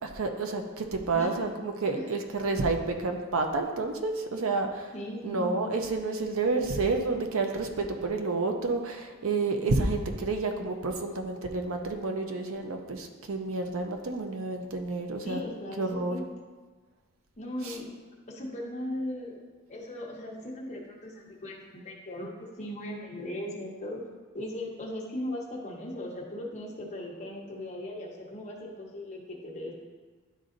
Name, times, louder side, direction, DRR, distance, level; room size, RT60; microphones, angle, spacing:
voice 1, 0.0-4.9 5.2-15.4 15.8-16.2 17.6-17.8, right 3 dB, 60° right, 4 dB, 0.6 m, -30 dB
voice 2, 4.9-5.7 15.2-16.2 17.4-17.9 18.3-19.4 19.7-24.0 24.3-29.7, left 1 dB, 30° left, -2 dB, 1.0 m, -38 dB
11.0 x 3.9 x 2.6 m, 1.4 s
head